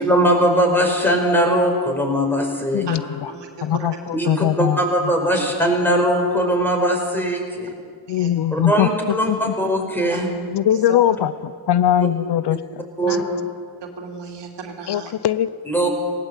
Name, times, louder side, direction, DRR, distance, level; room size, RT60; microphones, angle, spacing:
voice 1, 0.0-2.8 4.1-7.7 8.5-10.3 13.0-13.2 15.7-15.9, equal, 5° left, 1 dB, 4.9 m, -20 dB
voice 2, 2.7-3.3 3.6-4.8 8.1-8.9 9.3-9.5 10.5-12.8 14.9-15.5, left 11 dB, 75° left, 17 dB, 0.7 m, -21 dB
voice 3, 3.3-3.9 4.2-4.3 8.1-8.3 10.1-10.3 10.7-11.0 13.0-13.2 13.8-15.1, right 6 dB, 85° right, 2 dB, 2.9 m, -35 dB
18.5 x 17.5 x 8.2 m, 2.1 s
cardioid pair, 80°, 41 cm